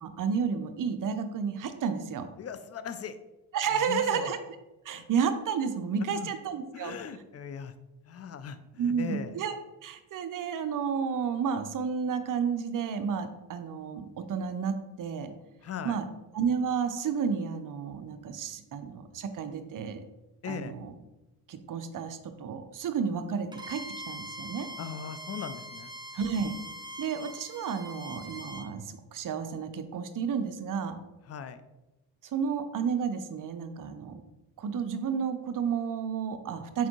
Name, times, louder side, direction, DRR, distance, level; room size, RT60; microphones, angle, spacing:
voice 1, 0.0-2.3 3.5-4.4 4.9-7.0 8.8-9.6 9.8-15.3 15.8-16.0 16.3-20.0 20.5-20.9 21.5-23.8 24.1-24.7 26.1-26.5 27.0-31.0 32.3-34.2 34.6-36.9, right 6 dB, 40° right, 8 dB, 0.6 m, -31 dB
voice 2, 2.4-3.2 3.7-4.3 4.9-5.0 6.1-6.3 6.7-7.7 8.0-9.4 15.6-16.0 20.4-20.7 24.8-25.9 31.3-31.6, left 7 dB, 35° left, 12 dB, 0.4 m, -39 dB
Bowed string instrument, 23.5-28.7, equal, 10° right, 0.8 m, -43 dB
4.1 x 3.7 x 3.0 m, 1.0 s
supercardioid pair, 45°, 49 cm